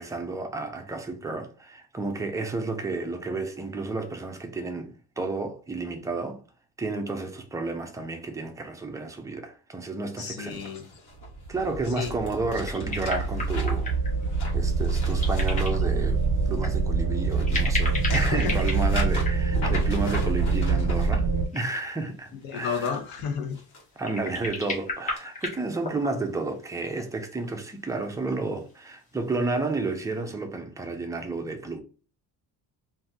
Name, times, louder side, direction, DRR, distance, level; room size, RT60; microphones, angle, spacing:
voice 1, 0.0-6.4 6.8-10.6 11.5-13.9 14.5-16.2 16.5-23.0 24.0-31.8, right 3 dB, 10° right, 0.5 m, -31 dB
voice 2, 10.2-10.9 11.9-12.1 18.1-18.6 22.4-23.6, left 6 dB, 75° left, 0.9 m, -31 dB
sound 1, 10.5-16.6 17.1-21.2 22.4-23.8 24.3-24.5 25.2-25.3, left 2 dB, 50° left, 1.5 m, -41 dB
sound 2, 11.3-21.5, right 4 dB, 35° right, 0.8 m, -25 dB
sound 3, 12.6-14.2 15.1-15.9 16.6-16.8 17.4-19.9 21.1-21.2 21.4-22.1 24.0-26.4 27.3-27.4 28.5-28.7, left 3 dB, 20° left, 1.1 m, -34 dB
3.6 x 2.6 x 2.7 m
cardioid pair, 155°, 35 cm